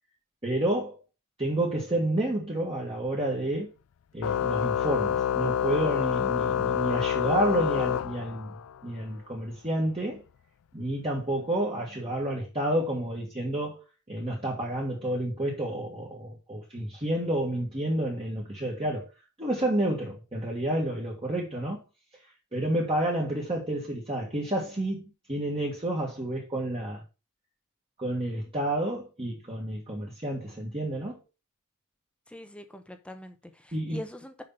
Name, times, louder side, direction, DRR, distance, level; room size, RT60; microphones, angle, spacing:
voice 1, 0.4-1.0 1.4-3.7 4.1-10.2 10.7-19.1 19.4-21.8 22.5-27.0 28.0-31.2 33.7-34.0, right 1 dB, 25° right, 1.8 m, -30 dB
Organ, 4.2-8.7, left 8 dB, 70° left, 0.3 m, -27 dB
voice 2, 32.3-34.4, left 1 dB, 5° left, 0.8 m, -43 dB
6.6 x 5.6 x 5.5 m
head